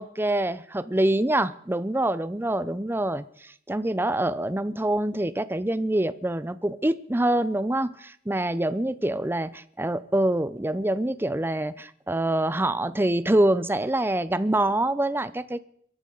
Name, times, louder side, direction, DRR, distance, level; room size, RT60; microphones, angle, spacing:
voice 1, 0.0-9.5 9.8-15.6, right 1 dB, 10° right, 15 dB, 0.6 m, -25 dB
24.0 x 14.0 x 4.0 m, 0.63 s
head